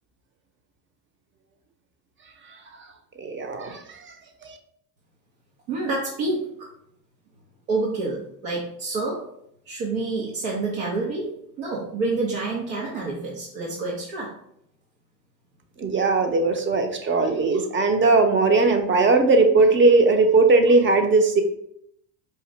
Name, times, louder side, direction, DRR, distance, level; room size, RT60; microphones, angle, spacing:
voice 1, 3.2-4.1 4.4-4.6 15.8-21.4, right 3 dB, 25° right, 6 dB, 0.6 m, -19 dB
voice 2, 5.7-6.5 7.7-9.2 9.7-14.3, right 3 dB, 80° right, -3 dB, 1.1 m, -28 dB
4.8 x 2.6 x 3.1 m, 0.72 s
hypercardioid pair, 85°, 50 cm